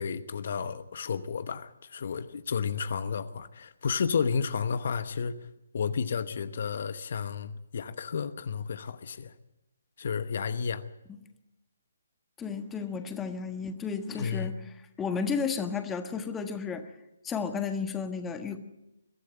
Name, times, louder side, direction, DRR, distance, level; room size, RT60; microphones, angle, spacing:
voice 1, 0.0-5.5 5.7-9.3 10.0-10.8 14.1-14.5, left 6 dB, 55° left, 12 dB, 1.0 m, -32 dB
voice 2, 12.4-14.6 15.0-16.9 17.2-18.6, left 5 dB, 10° left, 7 dB, 1.4 m, -32 dB
22.5 x 13.5 x 9.0 m, 0.93 s
figure-of-eight pair, 145°, 0 cm